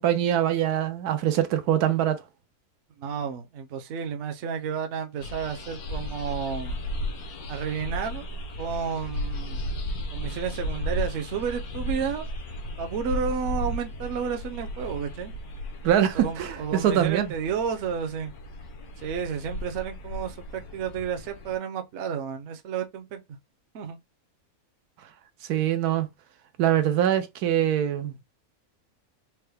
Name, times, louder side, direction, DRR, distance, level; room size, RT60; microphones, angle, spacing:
voice 1, 0.0-2.2 15.8-17.3 25.5-26.1 26.6-28.2, right 10 dB, 90° right, 1.2 m, -23 dB
voice 2, 3.0-6.8 7.5-8.3 8.6-9.6 10.1-12.3 12.8-15.3 16.1-18.3 19.0-23.4 23.7-24.0, right 7 dB, 60° right, 0.8 m, -31 dB
sound 1, 5.2-21.6, left 1 dB, 80° left, 1.2 m, -35 dB
4.6 x 2.1 x 3.3 m
omnidirectional pair, 1.6 m